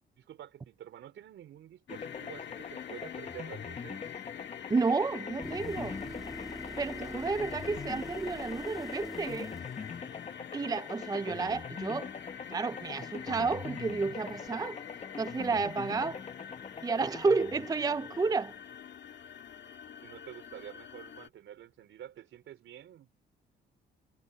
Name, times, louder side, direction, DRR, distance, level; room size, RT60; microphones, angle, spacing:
voice 1, 0.0-4.0 7.0-7.3 20.0-23.1, right 11 dB, 75° right, 4.3 m, -49 dB
sound 1, 1.9-21.3, left 9 dB, 65° left, 1.9 m, -45 dB
sound 2, 1.9-18.8, left 5 dB, 35° left, 1.4 m, -44 dB
voice 2, 4.7-6.0 6.8-9.5 10.5-12.1 12.5-14.8 15.2-16.2 16.8-18.5, right 4 dB, 20° right, 0.5 m, -31 dB
sound 3, 5.4-10.5 14.5-14.6, equal, ahead, 2.5 m, -44 dB
cardioid pair, 90°, 20 cm